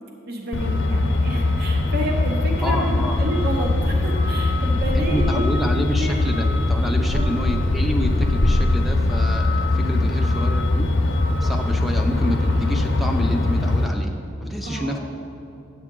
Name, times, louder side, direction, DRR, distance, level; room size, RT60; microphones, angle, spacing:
voice 1, 0.3-6.2 6.4-6.5 6.8-7.2 9.7-10.1 14.6-15.0, equal, 50° right, 1 dB, 0.7 m, -30 dB
Truck, 0.5-13.9, left 2 dB, 60° left, 0.6 m, -21 dB
voice 2, 2.6-3.2 5.0-10.9 11.4-14.1 14.4-15.0, equal, ahead, 2 dB, 0.5 m, -28 dB
9.4 x 7.6 x 3.7 m, 2.7 s
head